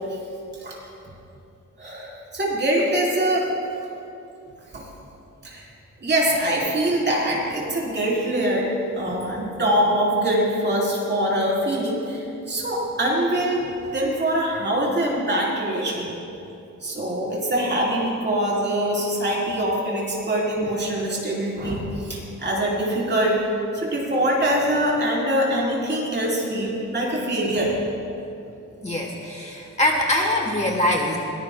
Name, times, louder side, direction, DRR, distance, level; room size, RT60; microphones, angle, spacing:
voice 1, 1.8-3.5 4.7-4.8 5.4-5.7 6.0-8.7 8.9-13.7 13.9-16.1 16.8-23.4 23.7-27.8, right 1 dB, 35° right, -4 dB, 3.7 m, -23 dB
voice 2, 28.8-31.2, left 1 dB, 20° left, 0 dB, 1.1 m, -23 dB
21.5 x 19.5 x 2.2 m, 2.8 s
wide cardioid pair, 170°, 31 cm